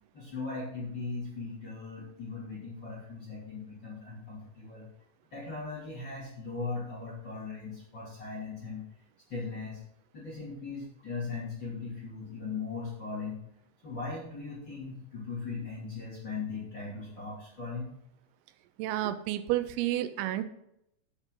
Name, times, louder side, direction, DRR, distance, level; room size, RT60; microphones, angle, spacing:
voice 1, 0.1-4.9 5.3-8.8 9.3-9.8 10.1-13.4 13.8-17.9, left 4 dB, 35° left, -6 dB, 2.0 m, -38 dB
voice 2, 18.8-20.4, right 14 dB, 90° right, 11 dB, 3.4 m, -30 dB
9.6 x 8.1 x 3.8 m, 0.78 s
omnidirectional pair, 6.0 m